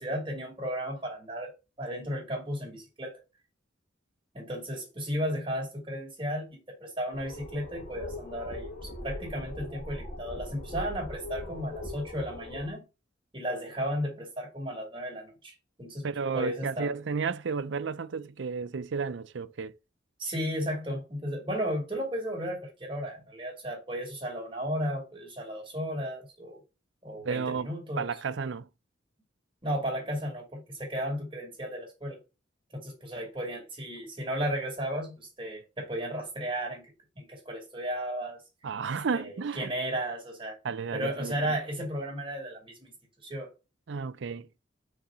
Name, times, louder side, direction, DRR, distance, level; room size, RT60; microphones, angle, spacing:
voice 1, 0.0-1.5 1.8-3.2 4.3-12.8 13.3-15.5 15.8-16.1 16.3-16.9 20.2-26.6 27.0-28.1 29.6-32.2 32.7-36.9 37.2-38.4 39.1-40.6 40.9-42.9 43.2-43.5, equal, 25° right, 2.5 m, -34 dB
sound 1, 7.1-12.7, left 1 dB, 40° left, 2.1 m, -40 dB
voice 2, 16.0-19.8 27.2-27.7 28.0-28.7 38.6-39.7 40.6-41.5 43.9-44.5, right 5 dB, 65° right, 0.5 m, -32 dB
5.7 x 3.7 x 5.0 m
head